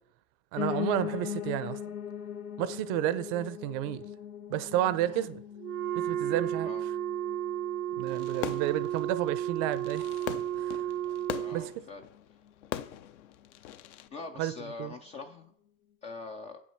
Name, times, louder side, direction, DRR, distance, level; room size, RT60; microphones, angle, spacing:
voice 1, 0.5-1.8 2.6-4.1 4.5-5.4 6.0-6.7 8.0-10.1 10.6-10.8 11.5-11.7 14.4-14.5 14.8-14.9, right 13 dB, 40° right, 0.6 m, -31 dB
Piano, 0.6-9.7 10.1-11.2 11.5-11.6 11.8-11.9 12.2-12.3 12.8-12.9, left 9 dB, 90° left, 1.0 m, -40 dB
Wind instrument woodwind instrument, 5.6-11.7, right 11 dB, 85° right, 1.0 m, -33 dB
Fireworks, 8.1-14.1, left 12 dB, 55° left, 0.7 m, -41 dB
voice 2, 11.3-12.0 14.1-15.5 16.0-16.6, left 4 dB, 15° left, 0.4 m, -43 dB
7.6 x 6.2 x 5.7 m
hypercardioid pair, 125°, 42 cm